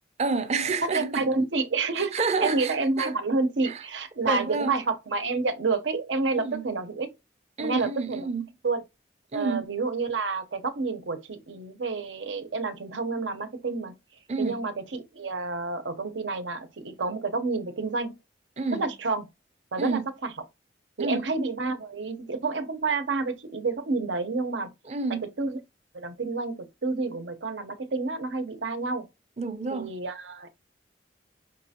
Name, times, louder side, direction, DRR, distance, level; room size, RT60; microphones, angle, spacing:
voice 1, 0.2-1.3 2.0-3.1 3.6-3.8 4.2-4.8 6.4-6.7 7.6-8.5 9.3-9.7 14.3-14.6 18.6-18.8 19.8-20.1 21.0-21.3 24.9-25.2 29.4-29.9, right 3 dB, 35° right, 0.5 m, -29 dB
voice 2, 0.8-7.1 7.6-8.3 8.6-8.8 9.3-13.9 14.4-18.2 18.7-19.3 19.7-20.3 21.0-24.7 25.2-25.6 25.9-29.1 29.7-30.5, right 3 dB, 90° right, 0.7 m, -29 dB
5.3 x 3.2 x 2.8 m
head